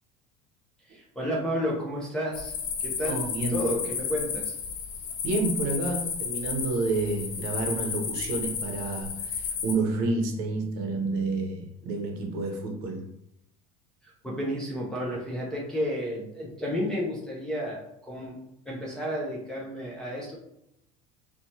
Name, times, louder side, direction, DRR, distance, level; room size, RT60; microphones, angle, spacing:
voice 1, 0.9-3.2 3.5-4.5 14.0-18.4 18.7-20.4, equal, 5° left, -5 dB, 0.3 m, -32 dB
sound 1, 2.3-9.7, left 6 dB, 60° left, 0.5 m, -33 dB
voice 2, 3.1-3.7 5.2-13.0, right 3 dB, 55° right, 2 dB, 0.7 m, -29 dB
2.9 x 2.1 x 2.7 m, 0.80 s
cardioid pair, 165°, 20 cm